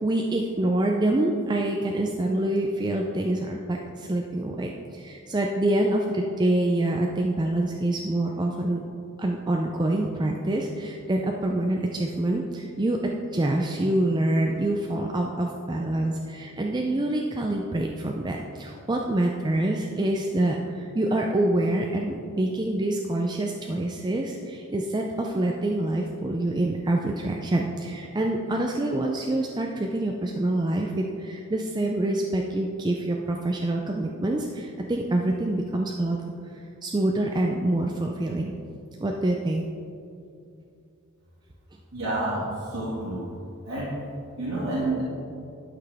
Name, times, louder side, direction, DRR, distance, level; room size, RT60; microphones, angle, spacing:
voice 1, 0.0-8.8 9.2-13.0 13.3-36.2 36.5-38.5 39.0-39.6, right 1 dB, 20° right, 1 dB, 0.4 m, -26 dB
voice 2, 41.9-43.2 43.6-43.9 44.4-45.0, right 2 dB, 75° right, -9 dB, 2.0 m, -29 dB
11.5 x 5.8 x 3.5 m, 2.5 s
head